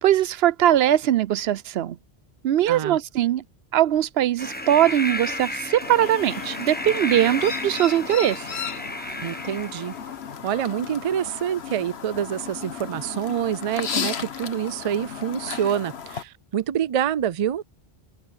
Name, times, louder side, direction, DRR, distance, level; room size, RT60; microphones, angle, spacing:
voice 1, 0.0-2.0 2.4-3.4 3.7-8.6, right 11 dB, 75° right, 0.8 m, -21 dB
voice 2, 2.7-3.0 9.2-9.9 10.4-17.6, right 9 dB, 50° right, 0.4 m, -26 dB
sound 1, 4.4-10.1, left 1 dB, 10° left, 1.2 m, -33 dB
Chirp tweet, 5.8-16.2, left 7 dB, 85° left, 1.4 m, -34 dB
open air
omnidirectional pair, 1.0 m